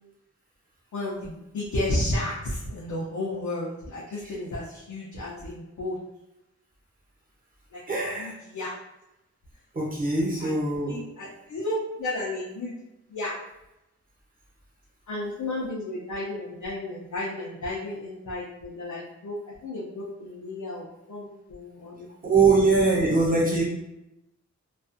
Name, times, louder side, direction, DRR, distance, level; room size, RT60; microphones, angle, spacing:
voice 1, 0.9-6.0 7.7-8.7 10.4-10.5 10.9-12.7 13.1-13.4 15.1-22.7, left 1 dB, 80° left, -5 dB, 0.6 m, -33 dB
voice 2, 7.9-8.3 9.7-11.0 22.2-23.6, right 3 dB, 30° right, -4 dB, 0.9 m, -22 dB
2.4 x 2.4 x 2.5 m, 0.92 s
wide cardioid pair, 105°, 29 cm